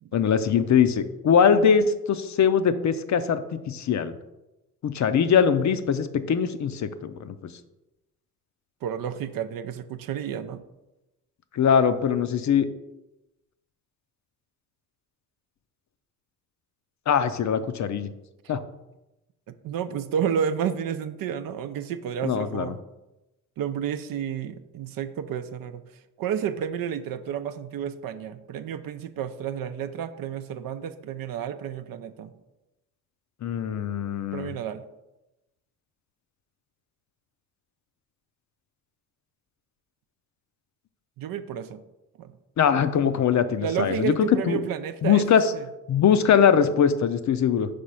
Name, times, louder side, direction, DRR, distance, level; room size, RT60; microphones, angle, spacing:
voice 1, 0.1-4.1 4.8-7.4 11.5-12.7 17.1-18.1 18.5-18.6 22.2-22.7 33.4-34.5 42.6-44.6 45.0-45.4 45.9-47.7, left 7 dB, 50° left, 11 dB, 0.6 m, -22 dB
voice 2, 8.8-10.6 19.5-22.8 23.6-25.8 26.2-32.3 34.3-34.8 41.2-41.8 42.2-42.3 43.6-45.3 45.5-45.7, right 8 dB, 60° right, 10 dB, 0.5 m, -31 dB
4.9 x 3.4 x 5.5 m, 0.97 s
hypercardioid pair, 50°, 38 cm